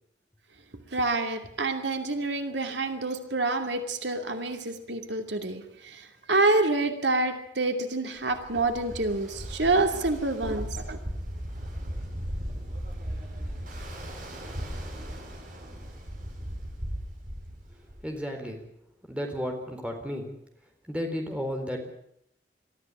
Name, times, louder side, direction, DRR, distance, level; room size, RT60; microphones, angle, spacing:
voice 1, 0.9-6.0 6.3-11.0, right 2 dB, 80° right, 5 dB, 2.7 m, -27 dB
Ocean, 8.3-18.2, equal, 45° right, 4.8 m, -37 dB
voice 2, 18.0-18.6 19.1-20.3 20.9-21.9, equal, 5° right, 2 dB, 4.0 m, -33 dB
22.0 x 14.5 x 9.8 m, 0.74 s
head